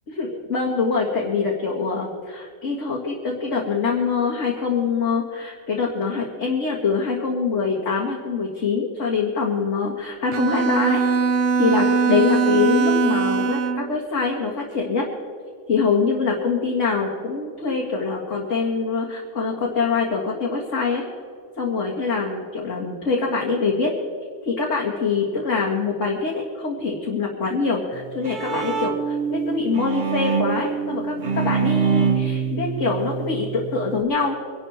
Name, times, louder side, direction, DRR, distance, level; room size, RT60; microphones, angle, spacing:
voice 1, 0.1-11.0 11.6-15.1 15.7-21.0 21.6-23.9 24.4-34.4, left 4 dB, 75° left, -3 dB, 2.2 m, -24 dB
Bowed string instrument, 10.3-13.9, right 5 dB, 70° right, 1.1 m, -21 dB
Bowed string instrument 2, 27.9-34.0, right 6 dB, 45° right, 1.1 m, -25 dB
24.5 x 11.5 x 4.2 m, 2.3 s
omnidirectional pair, 1.3 m